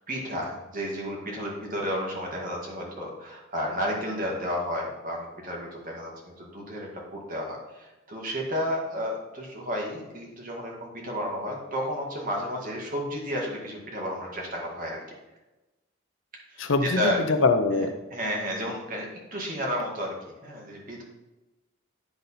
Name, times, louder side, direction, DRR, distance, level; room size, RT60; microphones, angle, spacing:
voice 1, 0.1-6.1 6.4-15.0 16.5-17.2 17.7-20.1 20.4-21.0, equal, 40° right, -1 dB, 1.9 m, -32 dB
voice 2, 16.6-17.9, left 3 dB, 65° left, 8 dB, 0.6 m, -23 dB
11.0 x 3.9 x 4.1 m, 1.1 s
head